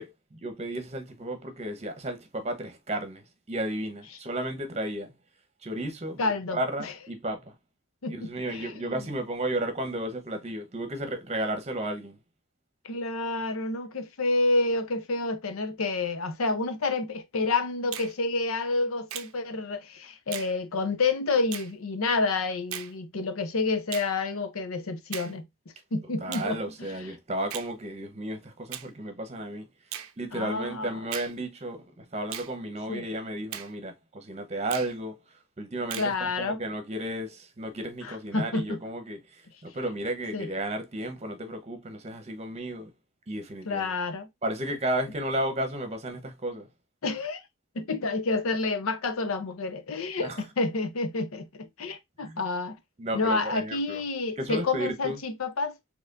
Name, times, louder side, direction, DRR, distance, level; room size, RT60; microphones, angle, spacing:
voice 1, 0.0-5.1 5.6-7.5 8.1-12.2 26.2-29.7 30.2-35.2 35.6-42.9 43.3-44.0 44.4-46.7 50.2-50.4 52.2-52.4 53.0-54.0 54.4-55.2, right 1 dB, 30° right, 0.9 m, -33 dB
voice 2, 6.2-6.9 8.0-9.0 12.8-25.5 25.9-27.1 30.3-31.0 32.9-33.0 36.0-36.6 38.0-38.8 40.3-40.5 43.7-44.3 47.0-47.4 47.7-52.8 53.1-55.7, left 3 dB, 85° left, 0.7 m, -29 dB
Finger snapping, 17.9-18.1 19.1-19.3 20.3-20.5 21.5-21.7 22.7-22.9 23.9-24.1 25.1-25.3 26.3-26.5 27.5-27.7 28.7-28.9 29.9-30.1 31.1-31.3 32.3-32.5 33.5-33.7 34.7-34.9 35.9-36.1, right 11 dB, 85° right, 0.5 m, -37 dB
4.2 x 3.0 x 2.5 m
head